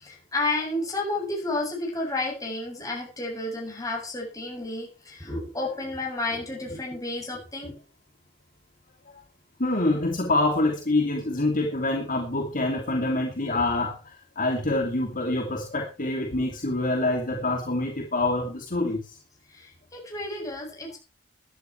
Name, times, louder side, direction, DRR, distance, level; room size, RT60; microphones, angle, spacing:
voice 1, 0.0-7.7 19.6-21.0, left 2 dB, 20° left, -1 dB, 7.7 m, -31 dB
voice 2, 9.6-14.0 14.4-19.2, left 2 dB, 45° left, 2 dB, 2.6 m, -26 dB
16.5 x 11.0 x 4.6 m, 0.34 s
head